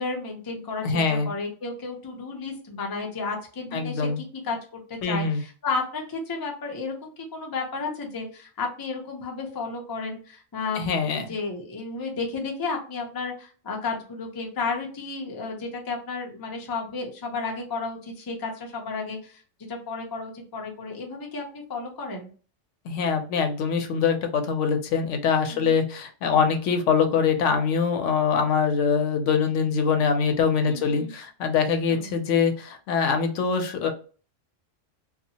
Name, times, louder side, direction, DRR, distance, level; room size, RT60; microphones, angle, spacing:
voice 1, 0.0-19.4 19.7-22.3 25.5-25.8 30.7-31.1 31.9-32.1, left 4 dB, 30° left, 1 dB, 0.4 m, -33 dB
voice 2, 0.8-1.3 3.7-4.2 5.0-5.4 10.7-11.3 22.9-33.9, left 6 dB, 75° left, 6 dB, 0.9 m, -23 dB
2.6 x 2.3 x 2.7 m, 0.39 s
omnidirectional pair, 1.3 m